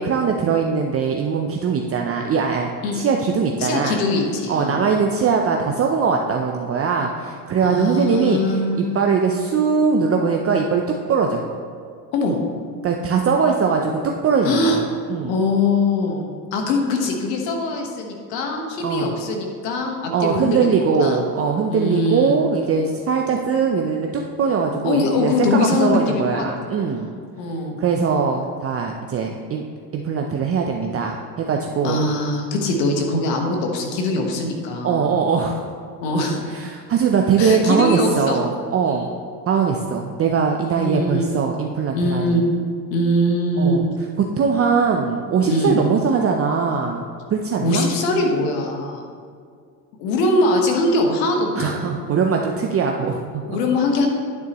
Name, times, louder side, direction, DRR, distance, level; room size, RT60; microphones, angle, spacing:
voice 1, 0.0-4.0 4.5-8.4 8.8-11.4 12.8-13.9 14.2-14.8 15.1-15.3 18.8-19.1 20.1-27.1 27.8-29.7 29.9-32.0 34.8-35.7 36.5-39.1 39.5-42.4 43.6-43.8 44.4-47.0 47.3-47.9 51.5-53.6, right 5 dB, 30° right, 2 dB, 0.6 m, -21 dB
voice 2, 3.6-4.8 7.6-9.2 12.1-12.4 14.4-14.8 15.2-21.2 21.7-22.4 24.8-26.4 27.4-27.8 31.8-35.1 36.0-36.5 37.4-38.4 38.8-39.1 40.7-41.3 41.9-42.4 42.9-43.8 45.4-45.8 47.6-49.0 50.0-51.9 53.4-54.1, left 2 dB, 80° left, 2 dB, 1.5 m, -22 dB
9.3 x 8.1 x 3.0 m, 2.1 s
supercardioid pair, 90°, 49 cm